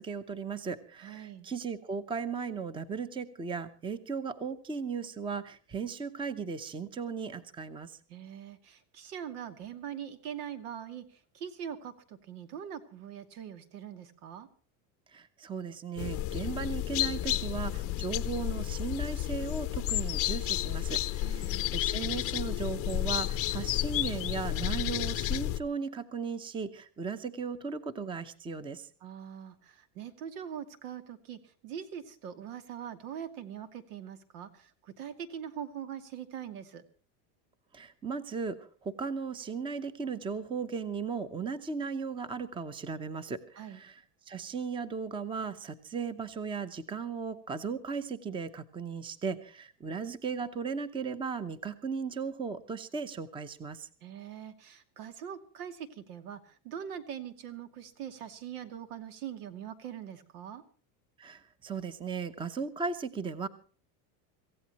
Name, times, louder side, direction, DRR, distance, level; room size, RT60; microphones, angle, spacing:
voice 1, 0.0-8.0 15.1-28.9 37.7-44.0 44.3-53.9 61.2-63.5, right 5 dB, 10° right, 14 dB, 0.7 m, -36 dB
voice 2, 1.0-1.5 8.1-14.5 21.2-21.7 29.0-36.8 43.6-43.8 54.0-60.6, right 9 dB, 90° right, 9 dB, 2.6 m, -42 dB
sound 1, 16.0-25.6, left 14 dB, 30° left, 0.6 m, -31 dB
26.0 x 15.5 x 3.0 m, 0.40 s
cardioid pair, 160°, 44 cm